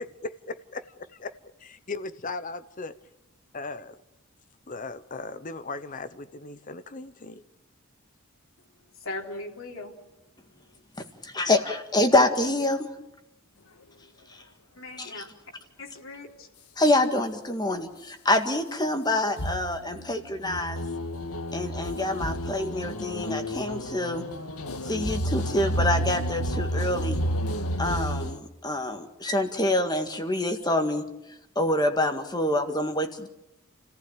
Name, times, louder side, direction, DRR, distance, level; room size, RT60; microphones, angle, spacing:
voice 1, 0.0-2.9 3.5-3.9 4.7-7.4, left 3 dB, 35° left, 0.9 m, -37 dB
voice 2, 9.0-10.0 14.8-15.2 15.8-16.5, left 2 dB, 60° left, 3.5 m, -38 dB
voice 3, 11.2-12.9 15.0-15.2 16.8-20.8 21.5-24.2 24.8-27.2 27.8-31.0 31.6-33.3, left 1 dB, 20° left, 1.9 m, -26 dB
sound 1, 19.4-28.4, equal, 80° left, 1.8 m, -30 dB
29.0 x 15.5 x 8.9 m
head